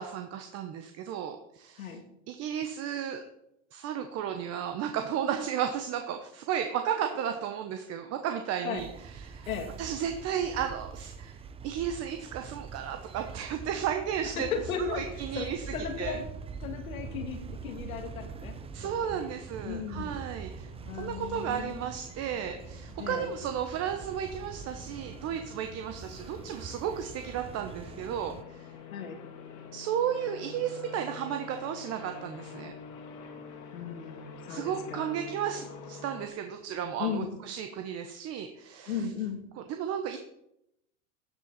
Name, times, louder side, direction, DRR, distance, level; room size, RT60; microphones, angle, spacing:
voice 1, 0.0-2.0 2.3-3.2 3.7-8.9 9.2-9.5 9.8-14.5 14.8-15.6 16.0-16.2 18.7-28.7 29.7-32.7 34.5-39.0 39.7-40.2, right 9 dB, 40° right, 6 dB, 1.0 m, -34 dB
sound 1, 8.8-28.4, right 5 dB, 15° right, 0.6 m, -44 dB
voice 2, 14.2-15.0 15.3-16.2 16.6-19.3 19.6-20.2 20.8-21.8 23.0-23.3 28.9-29.2 33.7-35.1 37.0-37.3 38.9-39.4, left 7 dB, 85° left, 5 dB, 2.4 m, -36 dB
sound 2, 17.5-36.3, left 5 dB, 45° left, 2.4 m, -48 dB
13.0 x 7.6 x 4.2 m, 0.82 s
hypercardioid pair, 115°, 40 cm